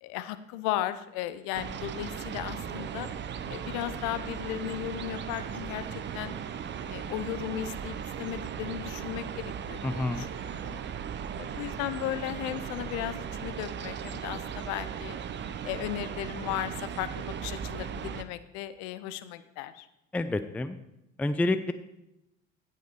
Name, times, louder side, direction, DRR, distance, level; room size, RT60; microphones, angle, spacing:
voice 1, 0.0-3.1 3.5-6.3 6.9-10.8 11.4-15.2 15.6-19.9, left 13 dB, 55° left, 13 dB, 0.8 m, -36 dB
sound 1, 1.5-18.2, right 8 dB, 30° right, 0.8 m, -37 dB
voice 2, 9.8-10.3 20.1-20.8 21.2-21.7, left 2 dB, 5° left, 11 dB, 0.5 m, -28 dB
16.5 x 5.8 x 4.7 m, 0.87 s
figure-of-eight pair, 65°, 37 cm